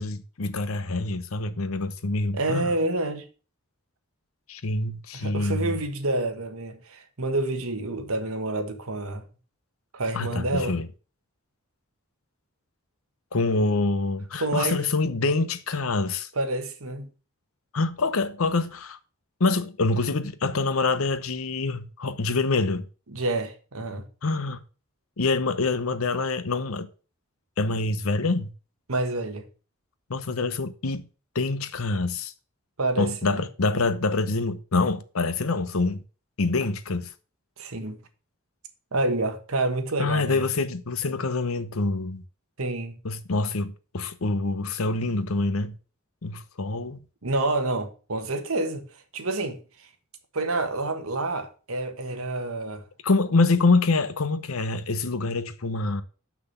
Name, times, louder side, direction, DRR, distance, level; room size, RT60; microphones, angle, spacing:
voice 1, 0.0-2.7 4.5-5.8 10.1-10.9 13.3-16.3 17.7-19.0 19.4-22.9 24.2-24.6 25.2-26.9 27.6-28.5 30.1-31.1 31.3-32.3 33.0-36.0 36.4-37.1 40.0-42.2 43.0-45.8 46.2-47.0 53.0-56.0, left 3 dB, 80° left, 0.8 m, -26 dB
voice 2, 2.3-3.3 5.1-9.3 9.9-10.8 14.4-14.8 16.4-17.1 23.1-24.1 28.9-29.4 32.8-33.4 37.6-38.0 38.9-40.4 42.6-43.0 47.2-48.8 49.1-49.6 50.3-52.8, right 2 dB, 85° right, 1.4 m, -28 dB
6.1 x 6.1 x 6.7 m
head